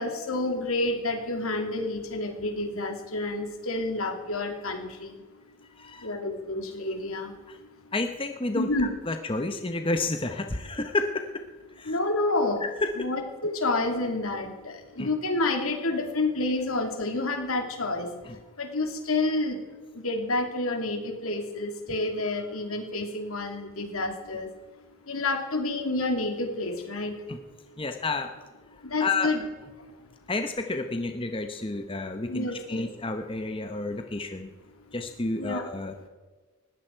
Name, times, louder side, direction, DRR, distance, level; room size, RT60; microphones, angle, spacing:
voice 1, 0.0-5.1 6.0-7.3 8.5-8.9 11.9-12.6 13.0-18.1 18.6-19.6 19.9-24.5 25.1-27.1 28.8-29.5 32.3-32.9 35.4-35.7, left 2 dB, 75° left, 4 dB, 2.8 m, -29 dB
voice 2, 5.8-6.1 7.5-7.6 7.9-11.4 11.8-12.0 12.6-13.1 15.0-15.1 18.2-18.4 27.3-27.4 27.8-28.3 28.7-29.3 30.3-34.5 34.9-36.1, left 3 dB, 25° left, 6 dB, 0.9 m, -31 dB
20.0 x 15.5 x 4.6 m, 1.3 s
head